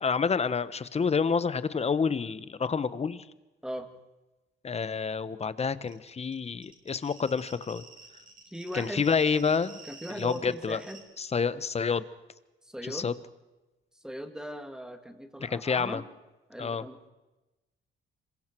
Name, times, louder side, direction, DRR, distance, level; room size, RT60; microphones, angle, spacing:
voice 1, 0.0-3.2 4.6-7.8 8.7-9.8 10.1-10.8 11.2-12.0 12.8-13.1 15.4-16.0 16.6-16.8, left 5 dB, 30° left, 15 dB, 1.1 m, -28 dB
sound 1, 5.6-5.7 5.9-11.0, right 4 dB, 40° right, 6.3 m, -50 dB
voice 2, 8.5-9.1 9.8-11.0 12.6-13.1 14.0-16.1 16.5-17.1, equal, 5° right, 7 dB, 2.3 m, -39 dB
26.5 x 22.5 x 4.6 m, 1.1 s
cardioid pair, 90°, 20 cm